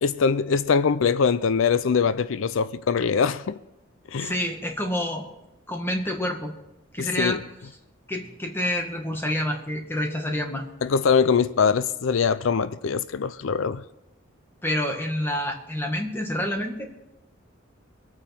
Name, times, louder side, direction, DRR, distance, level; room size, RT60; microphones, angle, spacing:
voice 1, 0.0-3.6 4.1-4.3 7.0-7.4 10.8-13.8, left 6 dB, 80° left, 0.5 m, -22 dB
voice 2, 4.2-5.3 5.7-6.5 6.9-7.4 8.1-10.7 14.6-16.9, left 1 dB, 10° left, 1.8 m, -28 dB
23.5 x 8.9 x 4.4 m
head